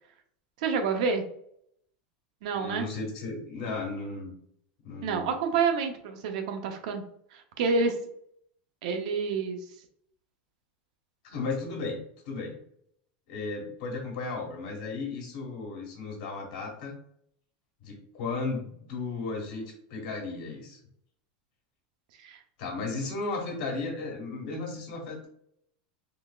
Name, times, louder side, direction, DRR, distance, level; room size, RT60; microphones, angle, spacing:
voice 1, 0.6-1.2 2.4-2.9 5.0-7.0 7.3-8.0 8.8-9.6 22.2-22.4, right 5 dB, 55° right, 4 dB, 0.7 m, -28 dB
voice 2, 2.5-4.3 4.8-5.3 11.2-12.6 13.3-17.0 17.8-20.8 22.6-25.3, left 3 dB, 55° left, 1 dB, 1.4 m, -35 dB
4.0 x 3.3 x 2.4 m, 0.67 s
supercardioid pair, 180°, 5 cm